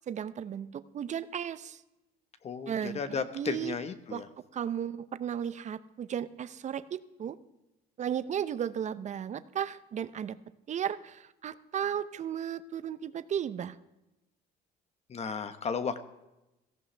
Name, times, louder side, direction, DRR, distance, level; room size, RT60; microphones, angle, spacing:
voice 1, 0.1-1.8 2.7-3.8 4.1-4.2 4.5-7.4 8.0-10.4 10.7-13.8, right 9 dB, 45° right, 14 dB, 0.7 m, -35 dB
voice 2, 2.4-4.3 15.1-16.0, left 6 dB, 40° left, 11 dB, 1.3 m, -34 dB
17.5 x 16.0 x 3.4 m, 0.96 s
cardioid pair, 110°, 17 cm